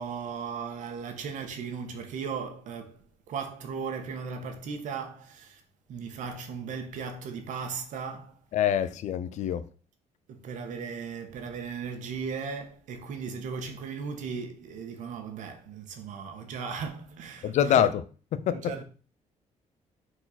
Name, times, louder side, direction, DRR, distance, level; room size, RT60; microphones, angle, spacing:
voice 1, 0.0-5.6 5.9-8.4 10.3-17.9 18.5-18.8, right 5 dB, 85° right, 1.6 m, -37 dB
voice 2, 8.5-9.7 17.4-18.0 18.3-18.8, left 10 dB, 70° left, 0.7 m, -25 dB
6.6 x 4.6 x 5.9 m
cardioid pair, 170°, 13 cm